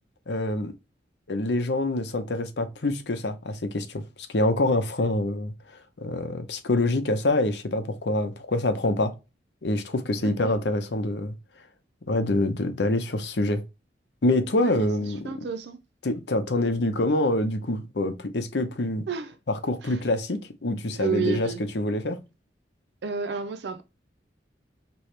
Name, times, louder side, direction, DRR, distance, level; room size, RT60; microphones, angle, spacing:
voice 1, 0.3-0.7 1.3-4.0 4.3-5.5 6.0-9.1 9.6-11.3 12.1-13.6 14.2-15.3 16.0-19.1 19.5-21.5 21.7-22.2, left 2 dB, 75° left, 0.8 m, -26 dB
voice 2, 10.2-10.6 14.6-14.9 15.2-15.8 19.1-19.4 19.8-20.0 20.9-21.6 23.0-23.8, right 5 dB, 70° right, 0.4 m, -31 dB
4.7 x 3.1 x 3.2 m
head